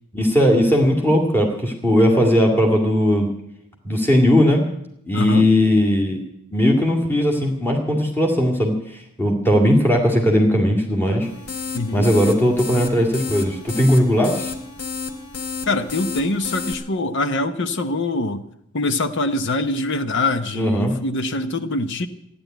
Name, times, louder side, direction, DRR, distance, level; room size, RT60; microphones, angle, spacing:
voice 1, 0.1-3.3 3.8-4.7 5.1-6.2 6.5-11.3 11.9-14.5 20.5-20.9, equal, 10° left, 0 dB, 2.2 m, -18 dB
voice 2, 5.1-5.5 11.7-12.1 15.6-18.5 18.7-22.1, left 2 dB, 55° left, 10 dB, 0.8 m, -24 dB
sound 1, 11.2-16.7, left 5 dB, 90° left, 1.9 m, -31 dB
14.5 x 10.5 x 9.1 m, 0.76 s
head